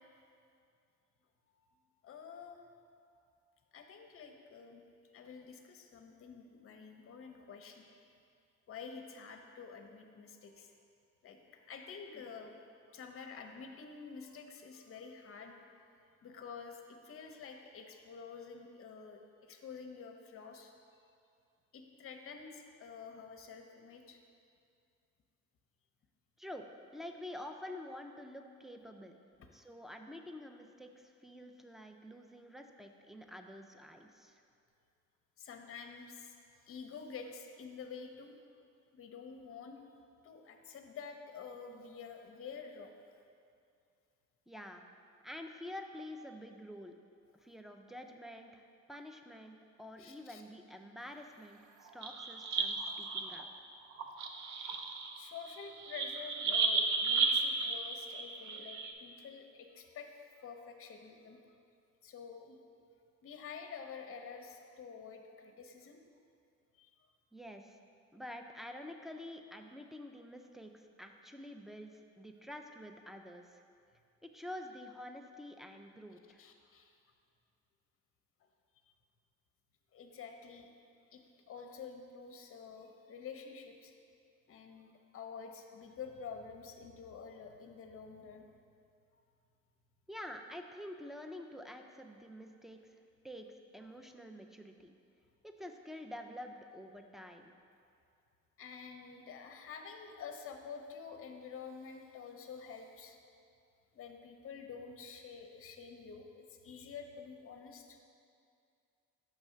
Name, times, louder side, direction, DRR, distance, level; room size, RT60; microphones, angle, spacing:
voice 1, 2.0-2.6 3.7-4.8 5.1-8.0 8.7-10.7 11.2-12.6 12.9-15.9 16.2-20.7 21.7-24.2 29.4-29.5 35.4-36.4 36.7-38.3 38.9-39.8 40.2-42.9 50.0-50.4 55.1-60.1 60.4-61.4 62.0-62.6 63.2-66.0 66.8-66.9 76.4-76.9 79.9-80.7 81.1-81.2 81.5-83.9 84.5-88.5 98.6-103.2 103.9-108.0, left 6 dB, 45° left, 5 dB, 0.6 m, -49 dB
voice 2, 26.9-29.1 29.5-34.4 44.5-44.8 45.2-46.9 47.4-48.6 48.9-53.5 67.3-67.7 68.1-73.6 74.2-76.4 90.1-92.8 93.2-93.5 93.7-94.9 95.4-97.5, left 1 dB, ahead, 4 dB, 0.3 m, -48 dB
sound 1, 51.9-53.4 53.9-58.9, right 4 dB, 70° right, 0.6 m, -34 dB
6.1 x 3.2 x 5.6 m, 2.4 s
cardioid pair, 90°, 30 cm